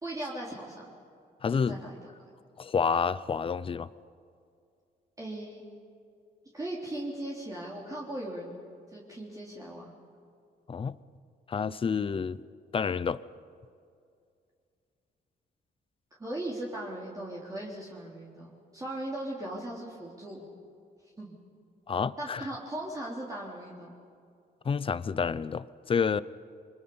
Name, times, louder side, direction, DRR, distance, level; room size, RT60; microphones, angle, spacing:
voice 1, 0.0-0.9 1.7-2.0 5.2-5.6 6.5-8.6 8.9-9.9 11.9-12.0 16.2-20.5 21.2-21.4 22.2-23.9, right 1 dB, 20° right, -5 dB, 3.7 m, -38 dB
voice 2, 1.4-1.8 2.6-3.9 10.7-11.0 11.5-12.4 12.7-13.2 21.9-22.5 24.6-26.2, left 6 dB, 30° left, 17 dB, 0.6 m, -29 dB
29.0 x 24.5 x 5.6 m, 2.4 s
cardioid pair, 125°, 17 cm